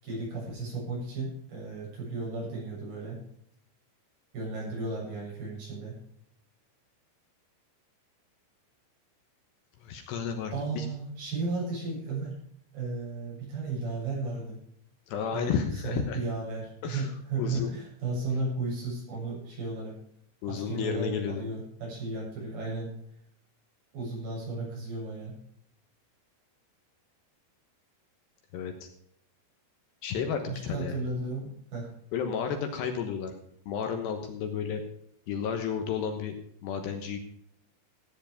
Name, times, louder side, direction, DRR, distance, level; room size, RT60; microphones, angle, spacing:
voice 1, 0.0-3.2 4.3-5.9 10.5-12.4 12.7-14.6 15.3-15.5 15.8-20.0 20.5-22.9 23.9-25.3 30.5-31.9, right 3 dB, 50° right, -4 dB, 9.4 m, -34 dB
voice 2, 9.8-10.9 15.1-16.2 16.8-17.1 17.4-17.7 20.4-21.4 28.5-28.9 30.0-31.0 32.1-33.3 33.7-34.8 35.3-36.3 36.6-37.2, left 7 dB, 70° left, 5 dB, 3.1 m, -32 dB
16.0 x 9.8 x 5.1 m, 0.69 s
omnidirectional pair, 5.6 m